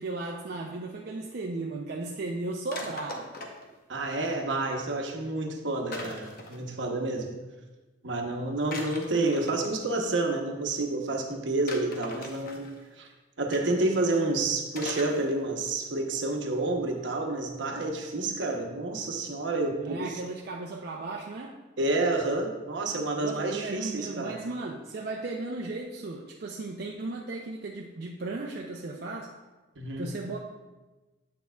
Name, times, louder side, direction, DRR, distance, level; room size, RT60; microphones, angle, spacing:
voice 1, 0.0-3.3 19.8-21.5 23.2-29.3 30.0-30.4, right 3 dB, 55° right, -1 dB, 0.5 m, -36 dB
sound 1, 2.7-3.7 5.9-6.6 8.7-9.9 11.7-12.8 13.5-13.8 14.8-15.3 15.6-15.7, left 2 dB, 50° left, 0.8 m, -40 dB
voice 2, 3.9-7.3 8.0-12.7 13.0-13.1 13.4-20.2 21.8-24.4 29.8-30.1, right 2 dB, 70° right, 3 dB, 0.9 m, -29 dB
8.4 x 6.4 x 2.3 m, 1.2 s
head